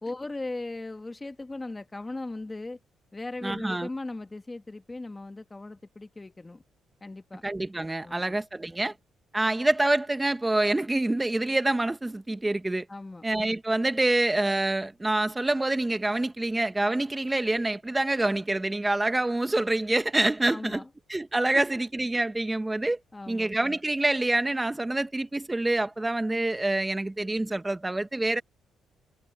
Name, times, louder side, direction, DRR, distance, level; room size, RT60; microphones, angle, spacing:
voice 1, 0.0-2.8 3.1-6.6 7.0-7.4 8.0-8.4 12.9-13.2 20.5-20.9 23.1-23.5, left 2 dB, 20° left, 1.3 m, -38 dB
voice 2, 3.4-3.9 7.4-8.9 9.3-12.8 13.2-20.8 21.1-23.0 23.3-28.4, right 2 dB, 15° right, 1.4 m, -26 dB
cardioid pair, 90°, 0 cm